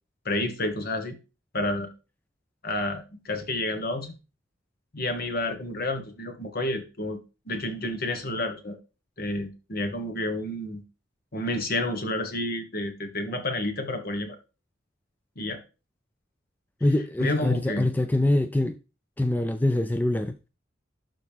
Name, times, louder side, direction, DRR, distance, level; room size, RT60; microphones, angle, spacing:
voice 1, 0.2-1.2 1.5-1.9 2.6-4.2 4.9-7.2 7.5-8.8 9.2-10.8 11.3-14.4 15.4-15.6 17.2-17.9, left 1 dB, 50° left, 1.3 m, -30 dB
voice 2, 16.8-18.8 19.2-20.4, left 1 dB, 10° left, 0.3 m, -24 dB
11.5 x 4.0 x 3.5 m
head